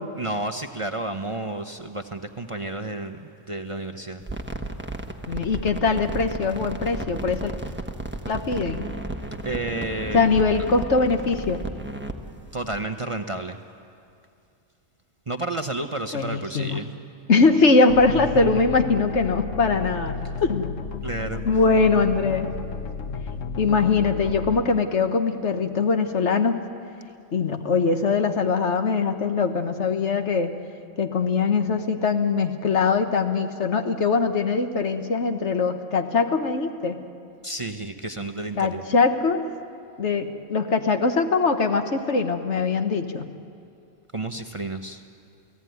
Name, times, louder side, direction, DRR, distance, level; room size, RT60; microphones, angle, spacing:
voice 1, 0.2-4.2 9.4-10.3 12.5-13.6 15.3-16.9 18.1-18.5 21.0-21.4 37.4-38.8 44.1-45.0, right 2 dB, 30° right, 6 dB, 0.8 m, -31 dB
sound 1, 4.2-12.8, right 2 dB, 10° right, 1.2 m, -34 dB
voice 2, 5.3-7.5 8.3-8.9 10.1-11.6 16.1-16.8 17.3-20.1 20.4-20.7 21.4-22.5 23.6-26.6 27.3-30.5 31.0-37.0 38.6-39.4 40.0-43.3, left 4 dB, 65° left, 7 dB, 1.6 m, -22 dB
sound 2, 17.9-24.6, left 5 dB, 90° left, 1.3 m, -33 dB
29.5 x 17.0 x 9.4 m, 2.4 s
omnidirectional pair, 1.3 m